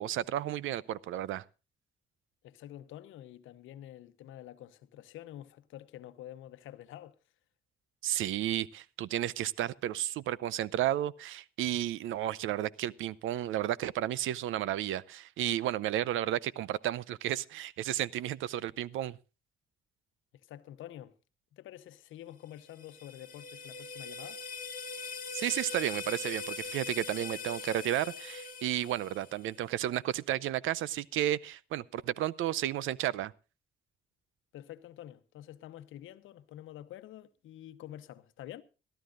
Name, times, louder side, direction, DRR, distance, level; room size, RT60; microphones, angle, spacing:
voice 1, 0.0-1.4 8.0-19.2 25.3-33.3, right 12 dB, 80° right, 0.6 m, -32 dB
voice 2, 2.4-7.2 20.3-21.1 21.5-24.4 34.5-38.6, left 12 dB, 85° left, 0.9 m, -48 dB
sound 1, 22.5-29.6, left 4 dB, 45° left, 1.2 m, -41 dB
23.0 x 12.5 x 2.5 m
cardioid pair, 90°, 20 cm